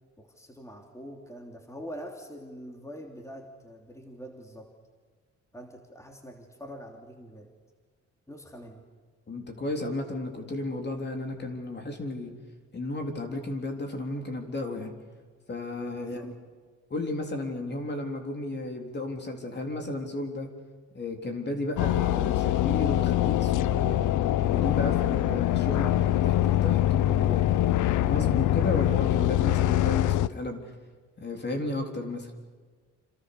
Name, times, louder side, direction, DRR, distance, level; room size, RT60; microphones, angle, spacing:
voice 1, 0.2-4.7 5.5-7.5 8.3-8.8 15.9-16.3, equal, 10° left, 2 dB, 3.1 m, -44 dB
voice 2, 9.3-12.3 12.7-14.9 15.5-16.3 16.9-20.5 20.9-24.1 24.5-30.6 31.2-32.3, left 2 dB, 35° left, 3 dB, 3.8 m, -33 dB
sound 1, 21.8-30.3, left 13 dB, 80° left, 0.7 m, -24 dB
27.5 x 26.0 x 6.9 m, 1.5 s
cardioid pair, 90°, 30 cm